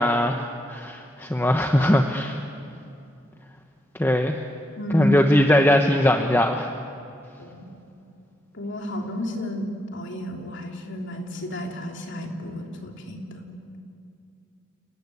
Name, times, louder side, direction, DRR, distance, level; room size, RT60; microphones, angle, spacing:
voice 1, 0.0-2.4 4.0-4.4 4.9-6.7, left 1 dB, 10° left, 4 dB, 1.0 m, -20 dB
voice 2, 4.8-5.2 7.4-7.7 8.5-13.5, left 1 dB, 60° left, 2 dB, 3.3 m, -31 dB
29.5 x 19.5 x 9.8 m, 2.6 s
head